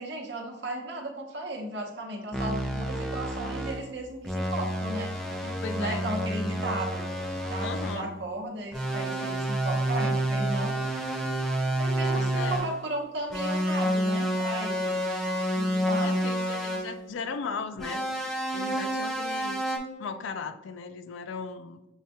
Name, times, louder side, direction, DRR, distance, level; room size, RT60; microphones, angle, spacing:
voice 1, 0.0-5.1 5.4-7.1 7.4-10.7 11.8-15.0 15.5-16.2, right 1 dB, 60° right, 1 dB, 0.8 m, -35 dB
sound 1, 2.3-3.9 4.2-8.1 8.7-12.8 13.3-16.9 17.8-19.8, right 1 dB, ahead, 0.4 m, -29 dB
voice 2, 5.6-6.1 7.6-8.1 12.1-12.7 16.0-18.0 18.5-19.6 20.0-21.9, left 5 dB, 70° left, 10 dB, 0.3 m, -37 dB
6.4 x 2.2 x 2.8 m, 1.0 s
head